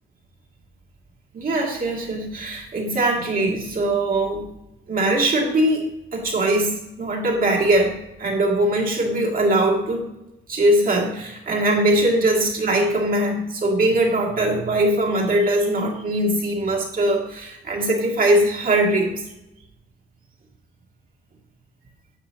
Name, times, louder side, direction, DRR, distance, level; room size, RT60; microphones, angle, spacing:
voice 1, 1.3-4.5 4.9-10.1 10.5-19.2, right 1 dB, 45° right, -2 dB, 2.3 m, -21 dB
10.5 x 6.9 x 2.8 m, 0.90 s
cardioid pair, 90°, 20 cm